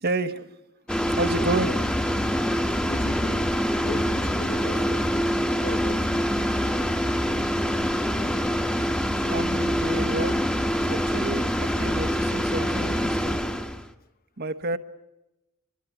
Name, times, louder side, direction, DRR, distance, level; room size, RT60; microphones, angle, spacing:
voice 1, 0.0-0.5 1.1-1.7 9.3-10.4 10.8-13.4 14.4-14.8, right 2 dB, 45° right, 1.1 m, -30 dB
sound 1, 0.9-13.9, equal, 5° left, 1.2 m, -25 dB
voice 2, 2.9-3.5 3.8-6.4, left 1 dB, 40° left, 1.3 m, -37 dB
24.5 x 22.0 x 8.1 m
head